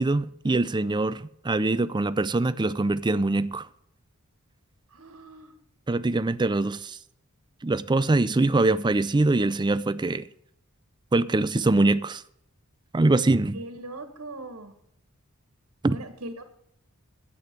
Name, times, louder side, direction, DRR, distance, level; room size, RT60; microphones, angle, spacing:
voice 1, 0.0-3.7 5.9-7.0 7.6-10.3 11.1-12.2 12.9-13.6 15.8-16.0, right 2 dB, 20° right, 0.5 m, -23 dB
voice 2, 4.9-5.5 13.5-14.7 15.9-16.4, right 2 dB, 70° right, 1.6 m, -40 dB
11.0 x 8.6 x 6.8 m
head